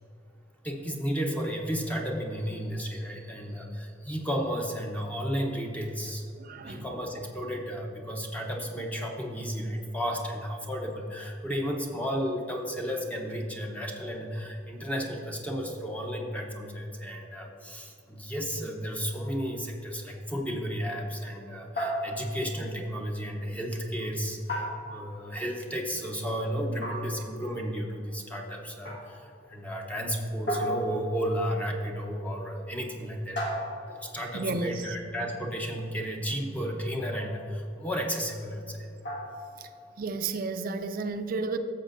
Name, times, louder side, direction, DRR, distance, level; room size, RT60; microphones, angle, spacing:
voice 1, 0.6-6.3 6.6-29.2 29.5-33.4 33.9-38.9, equal, 10° left, 0 dB, 0.7 m, -33 dB
voice 2, 6.4-6.9 34.3-35.0 39.6-39.7 40.0-41.6, right 3 dB, 50° right, 9 dB, 0.4 m, -32 dB
sound 1, 21.8-22.5 24.5-25.3 26.8-27.4 28.9-29.3 30.5-31.4 33.4-34.2 37.1-37.5 39.0-39.6, equal, 65° left, 1.5 m, -34 dB
13.0 x 7.2 x 2.6 m, 2.7 s
head